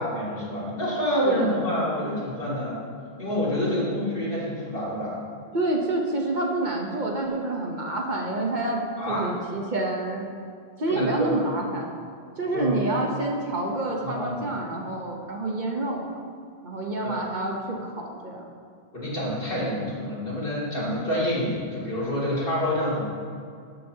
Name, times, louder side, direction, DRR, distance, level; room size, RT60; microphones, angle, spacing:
voice 1, 0.0-2.8 3.2-5.2 9.0-9.2 10.9-11.4 12.5-12.8 14.0-14.4 17.0-17.1 18.9-23.0, equal, 65° left, -8 dB, 2.8 m, -27 dB
voice 2, 1.2-1.6 3.8-3.9 5.5-8.8 9.1-10.2 10.8-11.9 12.4-16.1 16.6-18.4, right 2 dB, 50° right, 0 dB, 1.1 m, -28 dB
13.0 x 7.3 x 2.8 m, 2.3 s
omnidirectional pair, 1.0 m